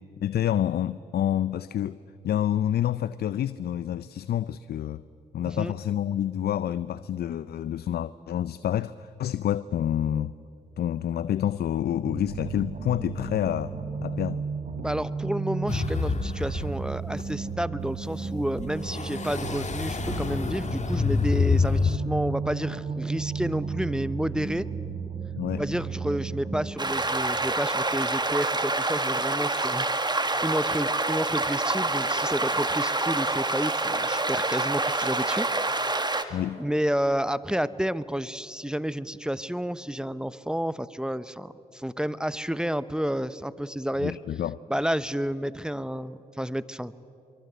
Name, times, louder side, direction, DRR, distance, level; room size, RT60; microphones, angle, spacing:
voice 1, 0.2-2.0 2.2-5.0 5.3-10.3 10.8-13.7 14.0-14.4 25.4-25.6 36.3-36.6 44.0-44.6, left 11 dB, 65° left, 0.5 m, -28 dB
sound 1, 12.1-26.7, right 5 dB, 40° right, 4.8 m, -34 dB
voice 2, 14.8-24.7 25.5-29.9 30.4-35.5 36.2-44.2 44.7-46.9, equal, 5° right, 0.9 m, -30 dB
sound 2, 15.7-16.8 17.2-17.3 18.6-22.0, left 5 dB, 40° left, 2.0 m, -27 dB
sound 3, 26.8-36.2, right 2 dB, 25° right, 1.9 m, -27 dB
24.0 x 23.5 x 8.1 m
supercardioid pair, 45°, 18 cm